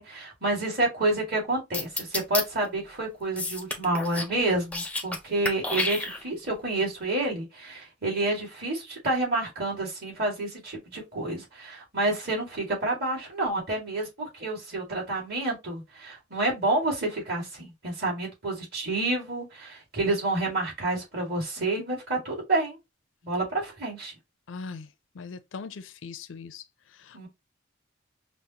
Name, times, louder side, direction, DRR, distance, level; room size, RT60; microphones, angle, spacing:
voice 1, 0.0-22.8 23.2-24.1 27.1-27.3, right 2 dB, 50° right, 2.0 m, -29 dB
sound 1, 1.7-2.4 3.4-4.3 4.6-5.2 5.4-6.5, left 2 dB, 5° left, 0.4 m, -30 dB
voice 2, 24.5-24.9 25.2-26.6 27.0-27.3, left 5 dB, 80° left, 0.4 m, -40 dB
5.1 x 2.0 x 2.8 m
head